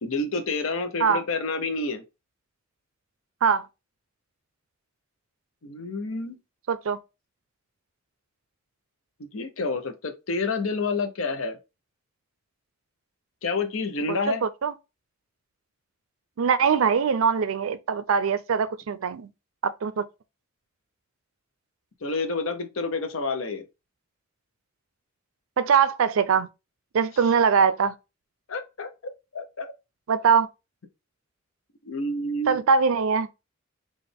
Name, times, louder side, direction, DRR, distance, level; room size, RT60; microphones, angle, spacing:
voice 1, 0.0-2.0 5.6-6.4 9.3-11.6 13.4-14.5 22.0-23.7 28.5-28.9 29.3-29.7 31.8-32.6, left 3 dB, 85° left, 0.7 m, -29 dB
voice 2, 6.7-7.0 14.4-14.7 16.4-19.3 19.6-20.0 25.6-26.5 26.9-27.9 30.1-30.5 32.5-33.3, right 6 dB, 85° right, 0.4 m, -22 dB
4.0 x 2.5 x 3.4 m
head